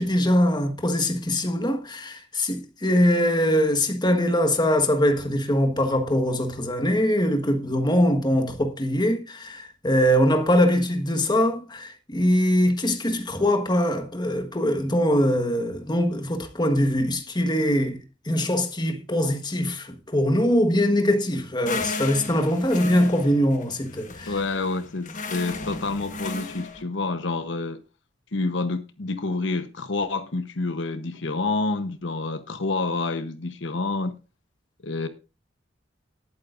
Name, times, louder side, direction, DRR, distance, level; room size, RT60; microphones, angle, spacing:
voice 1, 0.0-24.3, equal, 25° left, 1.4 m, -22 dB
sound 1, 21.7-26.8, left 3 dB, 45° left, 1.3 m, -34 dB
voice 2, 24.3-27.8 28.3-34.2 34.8-35.1, left 3 dB, 70° left, 1.0 m, -28 dB
19.0 x 8.7 x 2.5 m
head